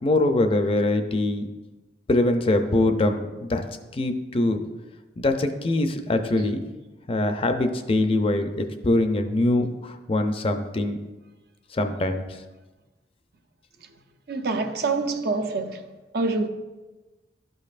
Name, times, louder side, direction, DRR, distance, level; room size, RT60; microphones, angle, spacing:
voice 1, 0.0-1.5 2.1-3.6 3.9-4.6 5.2-6.6 7.1-11.0 11.7-12.2, left 2 dB, 30° left, 0.5 m, -23 dB
voice 2, 14.3-15.8 16.1-16.5, right 3 dB, 60° right, 0.6 m, -26 dB
12.0 x 5.3 x 2.5 m
head